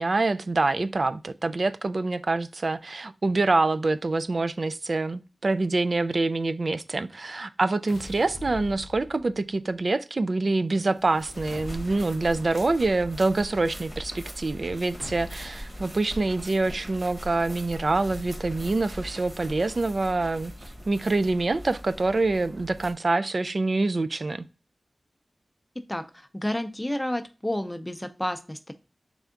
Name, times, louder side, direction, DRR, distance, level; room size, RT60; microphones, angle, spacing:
voice 1, 0.0-20.5 20.9-24.5, right 3 dB, 55° right, 0.3 m, -26 dB
sound 1, 7.9-9.5 10.9-12.5 15.0-15.8 18.1-19.2, left 3 dB, 85° left, 0.3 m, -43 dB
sound 2, 11.3-22.9, equal, 30° right, 1.3 m, -41 dB
voice 2, 26.3-28.7, left 1 dB, 10° left, 0.6 m, -30 dB
3.6 x 3.4 x 3.7 m
wide cardioid pair, 75°, 0 cm